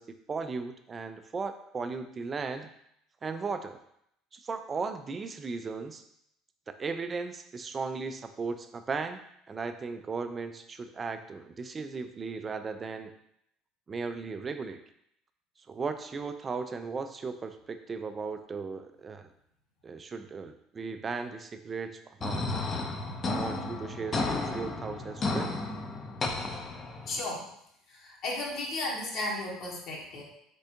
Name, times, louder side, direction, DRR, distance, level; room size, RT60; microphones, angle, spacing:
voice 1, 0.0-2.7 3.2-3.8 4.3-6.0 6.7-9.2 9.5-13.1 13.9-14.8 15.7-19.3 19.8-22.4 23.3-25.5, right 4 dB, 25° right, 9 dB, 0.4 m, -36 dB
sound 1, 22.2-27.2, left 2 dB, 30° left, 0.5 m, -33 dB
voice 2, 27.1-27.5 27.9-30.2, left 2 dB, 50° left, -2 dB, 0.9 m, -34 dB
4.1 x 3.5 x 2.8 m, 0.74 s
figure-of-eight pair, 60°, 0 cm